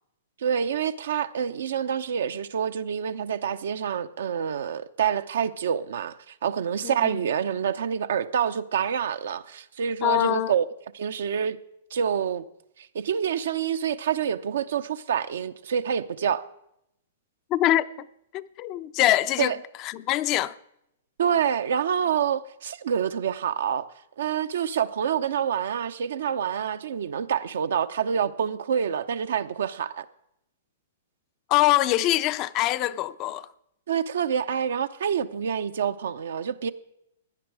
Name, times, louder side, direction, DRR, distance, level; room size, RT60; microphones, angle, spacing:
voice 1, 0.4-10.6 10.9-11.6 11.9-12.4 12.8-16.4 19.4-19.6 21.2-23.9 24.2-30.0 33.9-36.7, right 8 dB, 75° right, 0.7 m, -27 dB
voice 2, 6.8-7.2 10.0-10.5 17.5-18.1 18.3-20.6 31.5-33.5, left 15 dB, 35° left, 0.5 m, -24 dB
16.5 x 10.5 x 4.7 m
hypercardioid pair, 125°, 0 cm